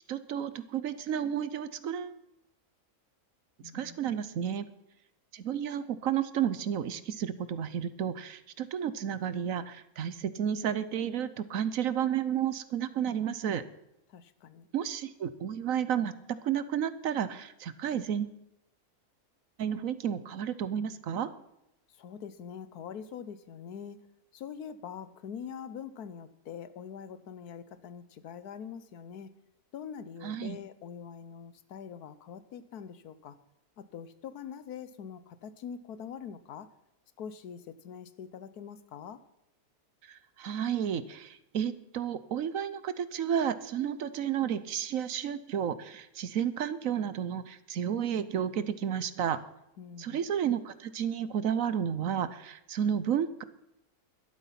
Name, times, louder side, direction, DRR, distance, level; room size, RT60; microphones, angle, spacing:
voice 1, 0.1-2.1 3.7-4.7 5.3-13.6 14.7-18.3 19.6-21.3 30.2-30.6 40.1-49.4 50.0-53.4, right 9 dB, 65° right, 14 dB, 1.1 m, -32 dB
voice 2, 3.6-4.0 14.1-14.7 22.0-24.0 24.3-29.3 29.7-33.4 33.8-36.7 37.2-39.2 49.8-50.2, left 7 dB, 85° left, 14 dB, 1.4 m, -44 dB
12.5 x 12.0 x 5.8 m, 0.84 s
omnidirectional pair, 1.6 m